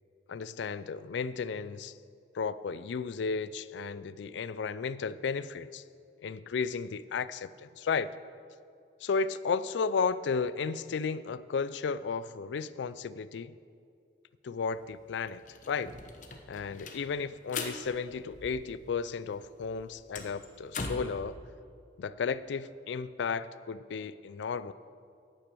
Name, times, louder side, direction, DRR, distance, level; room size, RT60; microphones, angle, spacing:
voice 1, 0.3-1.9 2.3-5.8 6.2-8.1 9.0-13.5 14.4-15.4 15.7-15.9 16.5-21.4 22.0-24.7, left 5 dB, 85° left, 17 dB, 0.4 m, -33 dB
sound 1, 14.7-14.8 15.1-19.0 19.3-21.2, left 3 dB, 45° left, 0.8 m, -41 dB
11.0 x 6.1 x 8.2 m, 2.4 s
head